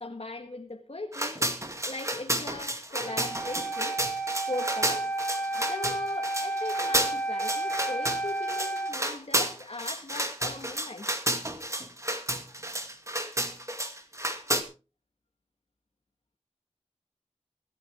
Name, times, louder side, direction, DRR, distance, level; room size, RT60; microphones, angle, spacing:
voice 1, 0.0-1.5 1.9-4.0 4.5-5.1 5.6-11.2, left 2 dB, 60° left, 1.8 m, -39 dB
sound 1, 1.1-14.6, right 1 dB, 25° right, 2.2 m, -31 dB
Wind instrument woodwind instrument, 3.0-9.0, right 2 dB, 5° left, 3.9 m, -32 dB
24.0 x 9.0 x 3.6 m
wide cardioid pair, 45°, 12 cm